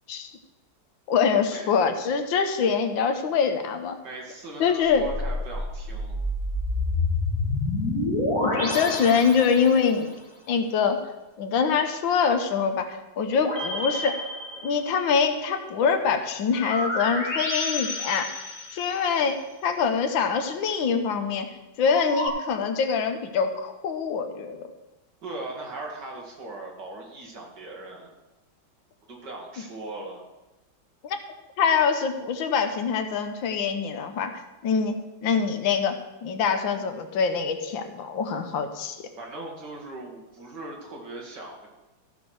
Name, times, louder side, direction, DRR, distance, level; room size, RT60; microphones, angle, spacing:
voice 1, 1.1-4.0 4.6-5.1 8.4-10.1 10.5-11.0 11.4-14.2 14.6-18.3 18.7-21.5 21.8-24.6 31.0-31.2 31.6-39.0, left 6 dB, 90° left, 7 dB, 1.7 m, -24 dB
voice 2, 4.0-6.1 25.2-28.1 29.1-30.2 39.2-41.7, right 2 dB, 65° right, -1 dB, 2.6 m, -39 dB
sound 1, 4.9-10.0 13.3-15.1 16.5-19.1 21.8-22.3, left 2 dB, 45° left, 3.1 m, -29 dB
15.0 x 6.1 x 4.7 m, 1.1 s
omnidirectional pair, 2.1 m